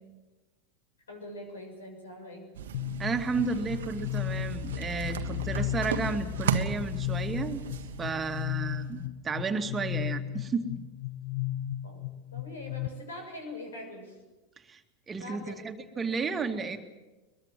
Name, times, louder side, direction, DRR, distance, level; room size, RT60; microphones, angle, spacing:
voice 1, 1.1-2.4 11.8-12.0 12.3-14.2 15.2-15.6 15.9-16.0, left 1 dB, 75° left, 4 dB, 6.8 m, -43 dB
sound 1, 2.5-9.0, right 7 dB, 65° right, 1.4 m, -36 dB
sound 2, 2.7-12.9, left 13 dB, 60° left, 0.7 m, -35 dB
voice 2, 3.0-7.6 8.0-10.7 14.7-14.8 15.1-16.8, right 4 dB, 20° right, 5 dB, 2.3 m, -32 dB
22.5 x 22.0 x 7.7 m, 1.1 s
figure-of-eight pair, 85°, 0 cm